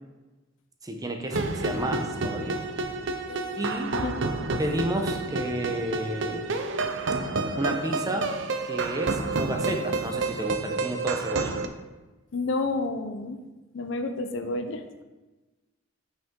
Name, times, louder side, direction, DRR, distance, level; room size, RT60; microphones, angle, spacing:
voice 1, 0.8-2.6 3.6-3.9 4.6-6.5 7.6-8.3 8.6-11.5, right 1 dB, 20° right, 4 dB, 0.8 m, -31 dB
sound 1, 1.3-11.7, right 3 dB, 65° right, 0.6 m, -29 dB
voice 2, 3.3-3.7 3.9-4.1 12.3-13.4 13.7-14.8, left 3 dB, 70° left, 7 dB, 0.6 m, -30 dB
8.0 x 5.7 x 3.7 m, 1.2 s
head